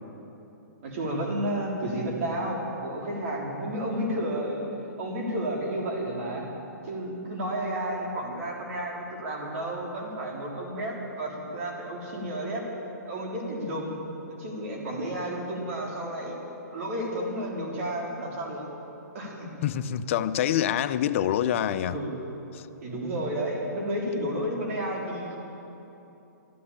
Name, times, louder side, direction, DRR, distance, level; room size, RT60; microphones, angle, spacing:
voice 1, 0.8-4.7 5.0-6.5 6.8-12.6 13.0-16.4 16.7-18.7 19.1-19.6 21.8-22.2 22.8-25.4, right 1 dB, 50° right, -1 dB, 3.6 m, -32 dB
voice 2, 19.6-22.0 22.5-22.6, left 10 dB, 45° left, 12 dB, 0.6 m, -26 dB
12.5 x 12.0 x 8.7 m, 3.0 s
hypercardioid pair, 155°, 10 cm